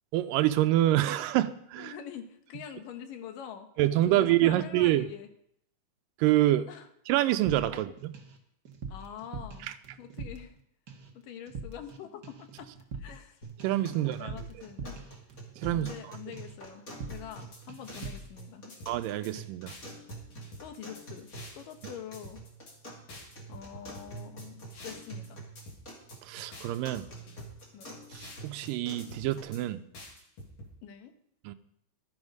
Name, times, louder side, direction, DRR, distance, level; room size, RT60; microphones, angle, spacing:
voice 1, 0.1-1.9 3.8-5.1 6.2-6.7 7.1-7.9 9.7-9.8 13.6-14.3 15.6-15.9 18.9-19.7 26.2-27.1 28.1-29.8 31.5-31.6, right 14 dB, 90° right, 11 dB, 2.3 m, -26 dB
voice 2, 1.8-3.7 4.1-5.3 6.7-6.9 7.7-7.8 8.9-9.7 10.0-10.6 11.1-13.5 13.9-15.0 15.7-18.8 20.6-21.3 21.5-22.4 23.5-25.4 27.7-27.9 30.8-31.1, left 9 dB, 80° left, 7 dB, 2.7 m, -45 dB
sound 1, 7.5-8.4 8.6-10.6 10.9-11.2 11.5-12.0 12.2-16.0 16.3-16.6 16.9-17.4 17.7-18.3, right 4 dB, 60° right, 1.1 m, -43 dB
sound 2, 13.4-29.4, right 2 dB, 25° left, 2.9 m, -47 dB
sound 3, 17.1-18.4 18.7-19.3 19.7-21.9 22.1-22.7 23.1-25.3 25.6-26.2 26.5-28.7 29.0-29.6 29.9-30.7, left 1 dB, 50° left, 3.4 m, -48 dB
12.5 x 9.6 x 5.3 m, 0.72 s
omnidirectional pair, 3.8 m